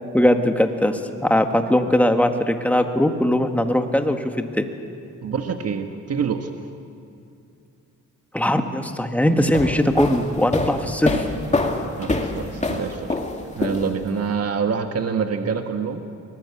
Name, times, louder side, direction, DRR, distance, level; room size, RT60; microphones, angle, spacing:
voice 1, 0.1-4.7 8.3-11.2, left 1 dB, 5° left, 5 dB, 1.8 m, -20 dB
voice 2, 5.2-6.5 12.0-13.2 13.6-16.0, right 6 dB, 55° right, 6 dB, 1.5 m, -26 dB
sound 1, 9.4-14.2, left 2 dB, 25° left, 2.7 m, -26 dB
23.5 x 20.0 x 8.5 m, 2.5 s
cardioid pair, 85°, 30 cm